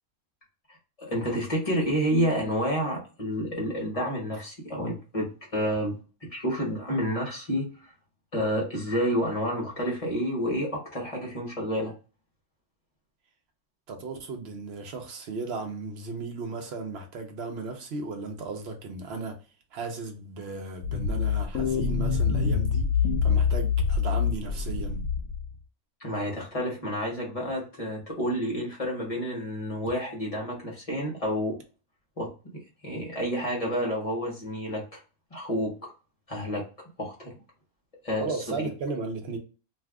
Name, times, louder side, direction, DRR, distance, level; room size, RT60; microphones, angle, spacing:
voice 1, 1.0-7.9 8.3-11.9 26.0-31.6 32.2-35.0 35.3-35.9 36.3-36.7 37.0-37.4 38.0-38.5, equal, 30° left, 0.8 m, -29 dB
voice 2, 13.9-19.4 19.7-22.9 23.2-25.0 38.2-39.4, right 4 dB, 55° right, 0.8 m, -35 dB
sound 1, 20.8-25.5, left 6 dB, 80° left, 1.0 m, -25 dB
2.6 x 2.3 x 3.4 m
omnidirectional pair, 1.5 m